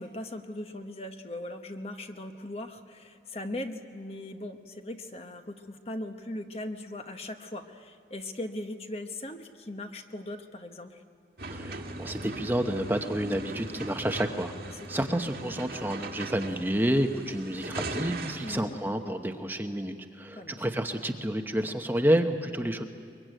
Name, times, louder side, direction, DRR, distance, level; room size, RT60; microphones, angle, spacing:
voice 1, 0.0-11.0 14.8-15.1 18.4-18.8 20.4-20.7, left 1 dB, 35° left, 6 dB, 1.1 m, -39 dB
sound 1, 11.4-18.6, right 2 dB, 60° right, 1.7 m, -39 dB
voice 2, 11.5-22.8, right 1 dB, 10° right, 5 dB, 0.9 m, -29 dB
23.5 x 23.0 x 9.1 m, 2.4 s
head